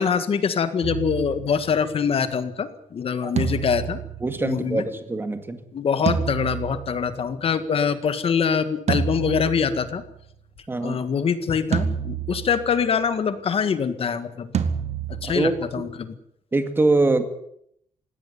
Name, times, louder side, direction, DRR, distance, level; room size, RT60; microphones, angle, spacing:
voice 1, 0.0-4.0 4.4-4.8 5.7-10.0 10.8-14.5 15.1-16.1, left 6 dB, 45° left, 12 dB, 1.8 m, -24 dB
sound 1, 0.8-2.1 3.4-5.1 6.1-7.4 8.9-10.2 11.7-12.9 14.5-16.0, right 7 dB, 55° right, 1.8 m, -29 dB
voice 2, 4.2-5.6 10.7-11.0 15.2-15.5 16.5-17.3, right 2 dB, 15° right, 9 dB, 2.1 m, -23 dB
20.0 x 17.0 x 9.5 m, 0.72 s
wide cardioid pair, 175°, 13 cm